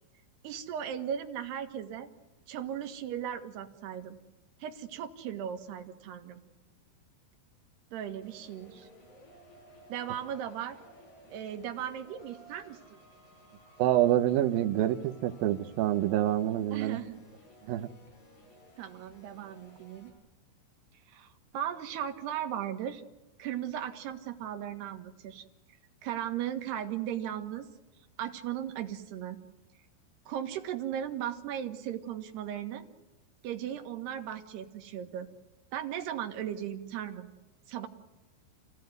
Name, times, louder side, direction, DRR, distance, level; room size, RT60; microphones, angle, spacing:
voice 1, 0.4-2.1 2.5-4.2 4.6-6.4 7.9-8.9 9.9-10.8 11.3-12.8 16.7-17.2 18.8-20.1 21.1-23.0 23.4-25.5 26.0-27.7 28.2-29.4 30.3-32.8 33.4-35.3 35.7-37.3 37.7-37.9, right 10 dB, 65° right, 6 dB, 3.3 m, -37 dB
sound 1, 8.2-20.1, equal, 35° left, 8.6 m, -57 dB
voice 2, 13.8-17.0 17.7-17.9, right 13 dB, 85° right, 6 dB, 2.0 m, -27 dB
29.5 x 17.0 x 9.4 m, 1.1 s
omnidirectional pair, 5.6 m